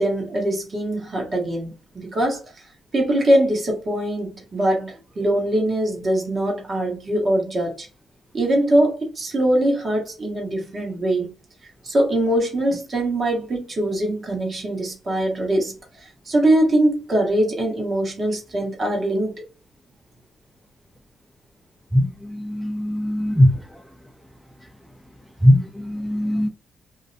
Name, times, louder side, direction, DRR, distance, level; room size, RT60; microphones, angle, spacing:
voice 1, 0.0-1.7 2.0-2.4 2.9-7.9 8.3-11.3 11.8-19.4, right 1 dB, 35° right, 1.0 m, -22 dB
voice 2, 21.9-23.5 25.4-26.5, equal, 5° left, 0.3 m, -19 dB
2.5 x 2.0 x 2.6 m
cardioid pair, 90°, 0 cm